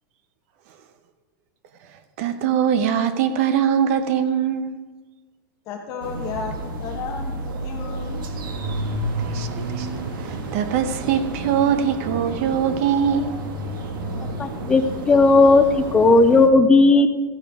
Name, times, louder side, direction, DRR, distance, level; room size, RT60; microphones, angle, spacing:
voice 1, 2.2-4.7 9.2-9.9 10.2-13.3, right 8 dB, 40° right, 10 dB, 0.8 m, -22 dB
voice 2, 5.7-8.3, left 5 dB, 30° left, 2 dB, 1.0 m, -33 dB
sound 1, 6.0-16.5, right 2 dB, 80° right, 1.7 m, -30 dB
voice 3, 14.4-15.6 15.9-17.1, left 3 dB, 10° left, 9 dB, 0.4 m, -14 dB
14.5 x 9.9 x 3.5 m, 1.3 s
supercardioid pair, 170°, 11 cm